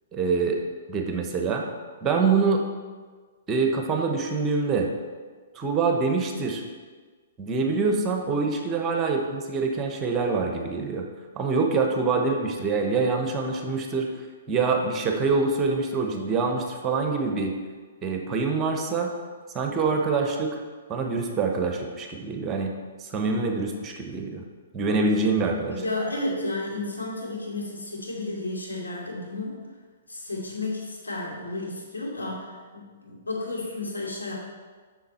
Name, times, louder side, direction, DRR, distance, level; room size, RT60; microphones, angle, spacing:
voice 1, 0.1-0.6 0.9-1.6 2.0-2.6 3.5-4.9 5.5-6.6 7.4-11.0 11.4-14.1 14.5-17.6 18.0-19.1 19.5-20.6 20.9-22.7 23.0-24.4 24.7-25.8, right 4 dB, 20° right, 3 dB, 1.0 m, -25 dB
voice 2, 25.7-29.6 30.1-34.3, left 2 dB, 85° left, -4 dB, 2.6 m, -32 dB
7.6 x 6.3 x 4.4 m, 1.5 s
figure-of-eight pair, 120°, 0 cm